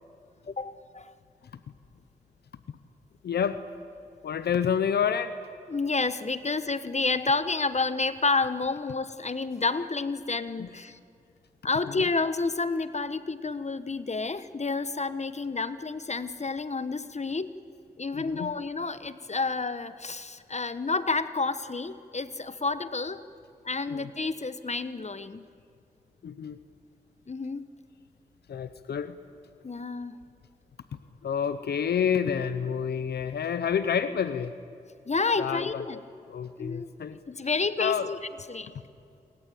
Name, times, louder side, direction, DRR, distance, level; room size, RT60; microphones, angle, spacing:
voice 1, 0.5-1.1 5.7-11.0 11.6-17.5 18.0-23.2 23.6-25.5 27.3-27.7 29.6-30.2 35.1-36.0 36.6-36.9 37.3-38.2 38.5-38.7, left 3 dB, 45° left, 13 dB, 1.2 m, -30 dB
voice 2, 3.2-3.6 4.2-5.4 10.6-10.7 11.9-12.0 18.1-18.5 23.9-24.1 26.2-26.6 28.5-29.2 31.2-34.5 35.4-35.8 36.3-37.2 37.8-38.1, left 7 dB, 85° left, 12 dB, 0.8 m, -29 dB
27.0 x 23.0 x 8.6 m, 2.5 s
cardioid pair, 40°, 17 cm